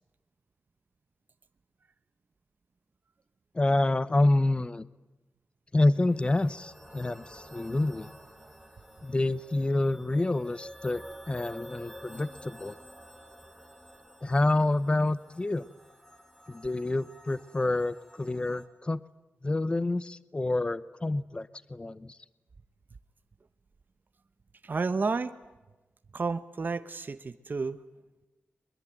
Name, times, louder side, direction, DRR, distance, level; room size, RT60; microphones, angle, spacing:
voice 1, 3.5-4.9 5.7-8.1 9.0-12.8 14.2-15.7 16.5-19.0 19.4-22.2, left 2 dB, 25° left, 17 dB, 0.8 m, -28 dB
sound 1, 5.9-18.7, equal, 5° left, 4.5 m, -50 dB
voice 2, 24.6-25.3 26.1-27.8, right 4 dB, 50° right, 10 dB, 1.1 m, -31 dB
23.0 x 21.5 x 9.2 m, 1.1 s
wide cardioid pair, 90°, 4 cm